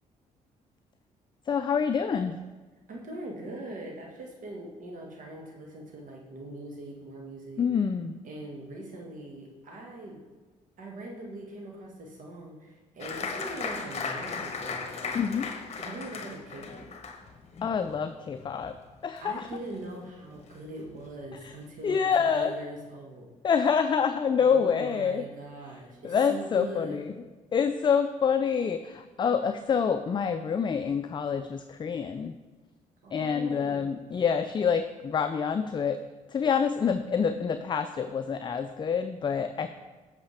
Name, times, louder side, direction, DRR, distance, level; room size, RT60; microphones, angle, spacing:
voice 1, 1.5-2.4 7.6-8.2 15.1-15.5 17.6-18.7 19.0-19.5 21.8-22.5 23.4-25.3 26.0-27.1 27.5-32.3 33.1-36.0 36.3-39.7, left 6 dB, 30° left, 9 dB, 0.4 m, -27 dB
voice 2, 2.9-7.6 8.2-10.2 10.8-16.9 19.2-23.3 24.4-27.1 33.0-33.9, right 1 dB, 70° right, 0 dB, 1.6 m, -42 dB
Applause, 13.0-20.1 20.3-21.1 21.5-21.6 21.9-22.3, left 5 dB, 50° left, 0.9 m, -37 dB
7.9 x 5.7 x 3.4 m, 1.3 s
supercardioid pair, 70°, 14 cm